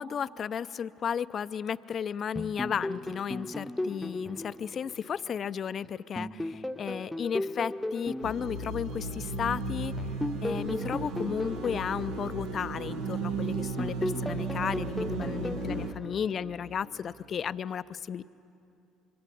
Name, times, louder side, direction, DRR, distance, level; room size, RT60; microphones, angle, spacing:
voice 1, 0.0-9.9 10.4-18.2, left 7 dB, 45° left, 15 dB, 0.5 m, -34 dB
sound 1, 2.4-5.7 6.2-9.4 10.0-13.3 13.8-17.0, left 1 dB, 5° left, 0.9 m, -37 dB
sound 2, 8.2-15.9, right 3 dB, 75° right, 1.5 m, -35 dB
26.0 x 23.0 x 8.3 m, 2.8 s
hypercardioid pair, 65°, 0 cm